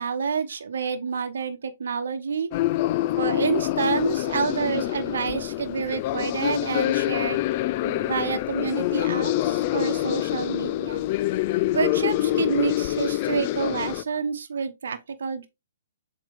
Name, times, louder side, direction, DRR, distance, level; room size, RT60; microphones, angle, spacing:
voice 1, 0.0-2.5 3.2-7.4 7.8-11.0 11.7-15.5, right 5 dB, 65° right, 1.0 m, -28 dB
sound 1, 2.5-14.0, left 15 dB, 40° left, 0.4 m, -26 dB
7.4 x 3.8 x 3.5 m
figure-of-eight pair, 125°, 0 cm